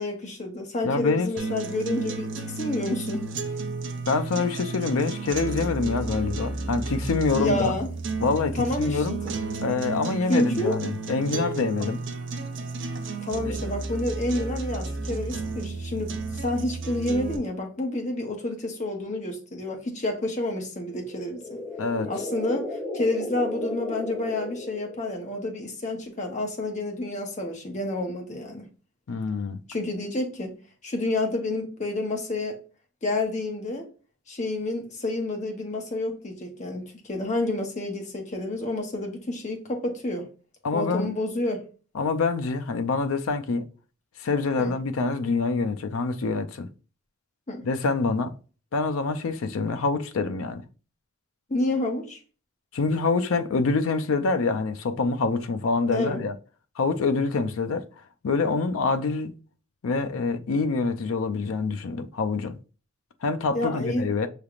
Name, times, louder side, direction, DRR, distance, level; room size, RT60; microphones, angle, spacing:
voice 1, 0.0-3.5 7.4-7.9 8.5-9.3 10.3-10.8 11.8-11.9 13.2-21.6 22.1-28.7 29.7-30.6 30.8-32.6 33.0-33.9 34.3-40.3 40.7-41.6 44.6-44.8 47.5-47.7 51.5-52.2 55.9-56.2 63.5-64.1, left 2 dB, 30° left, 0.8 m, -29 dB
voice 2, 0.8-1.3 4.1-7.8 8.2-9.2 9.6-12.0 13.5-13.6 21.8-22.1 29.1-29.6 40.6-41.1 41.9-43.7 44.2-46.7 47.6-48.4 48.7-50.6 52.7-56.3 56.8-57.9 58.2-59.3 59.8-62.6 63.2-64.3, left 4 dB, 70° left, 0.5 m, -26 dB
sound 1, 1.4-17.4, right 3 dB, 55° right, 0.5 m, -32 dB
sound 2, 20.9-25.3, left 1 dB, 15° left, 1.2 m, -35 dB
5.7 x 3.4 x 2.4 m
head